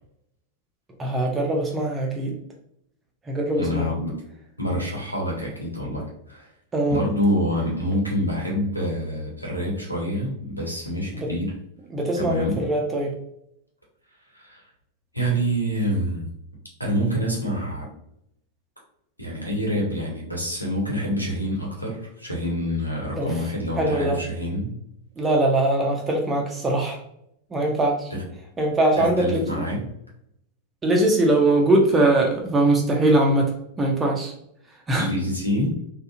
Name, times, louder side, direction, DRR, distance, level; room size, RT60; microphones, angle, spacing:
voice 1, 1.0-2.3 3.3-3.9 6.7-7.0 11.1-11.3 11.9-13.1 23.2-23.3 23.8-24.2 25.2-27.0 27.5-28.1 28.6-29.6 30.8-34.3 34.9-35.1, right 1 dB, 15° right, 0 dB, 0.5 m, -21 dB
voice 2, 3.6-4.2 4.6-6.5 6.9-11.5 12.2-12.6 14.3-14.7 15.1-16.3 16.8-17.9 19.2-24.7 28.1-28.2 29.0-29.8 35.0-35.8, equal, 90° left, -3 dB, 0.9 m, -26 dB
3.5 x 2.1 x 2.4 m, 0.76 s
figure-of-eight pair, 90°, 0 cm